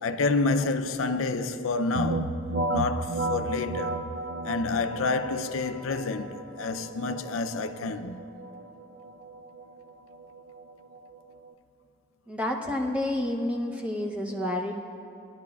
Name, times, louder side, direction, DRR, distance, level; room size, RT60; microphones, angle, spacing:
voice 1, 0.0-2.4 2.7-4.0 4.4-8.2, left 3 dB, 85° left, 0.5 m, -28 dB
sound 1, 1.9-11.5, right 2 dB, 65° right, 0.5 m, -34 dB
voice 2, 12.3-14.7, left 1 dB, 5° right, 0.7 m, -29 dB
20.0 x 10.5 x 2.3 m
head